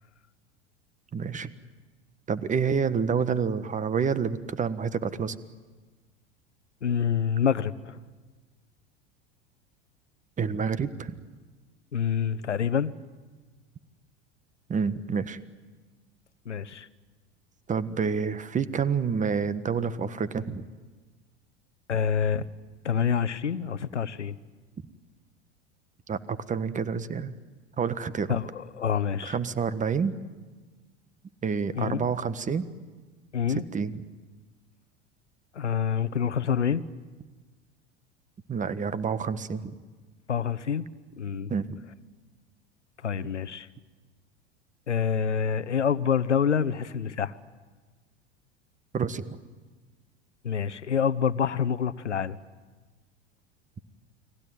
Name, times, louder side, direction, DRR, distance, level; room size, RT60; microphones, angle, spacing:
voice 1, 1.1-1.5 2.3-5.4 10.4-11.1 14.7-15.4 17.7-20.6 26.1-27.4 27.8-28.4 29.2-30.1 31.4-32.6 33.7-34.0 38.5-39.7 41.5-41.8 48.9-49.2, right 6 dB, 20° right, 14 dB, 1.4 m, -28 dB
voice 2, 6.8-8.0 11.9-12.9 16.5-16.9 21.9-22.5 22.8-24.4 28.3-29.4 31.7-32.1 33.3-33.6 35.5-36.8 40.3-40.9 41.2-41.5 43.0-43.7 44.9-47.3 50.4-52.4, left 7 dB, 85° left, 16 dB, 1.0 m, -27 dB
29.5 x 20.5 x 9.4 m, 1.3 s
figure-of-eight pair, 80°, 34 cm